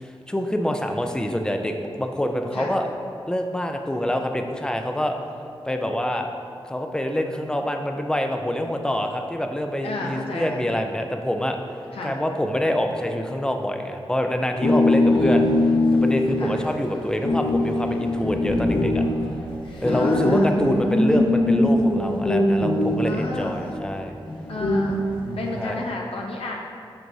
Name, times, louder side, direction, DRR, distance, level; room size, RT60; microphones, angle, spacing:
voice 1, 0.0-2.9 3.3-5.2 5.6-6.3 6.6-11.6 12.0-15.5 15.9-19.0 19.8-24.2 25.6-25.8, left 1 dB, 10° left, 4 dB, 0.5 m, -26 dB
voice 2, 9.8-10.6 11.9-12.2 14.9-15.5 16.4-16.6 19.9-20.5 23.0-23.6 24.5-25.0 25.4-26.5, left 2 dB, 80° left, -1 dB, 0.7 m, -32 dB
sound 1, 14.6-23.5 24.3-25.6, left 1 dB, 60° left, 1.2 m, -22 dB
7.8 x 5.9 x 2.7 m, 2.4 s
wide cardioid pair, 115°, 10 cm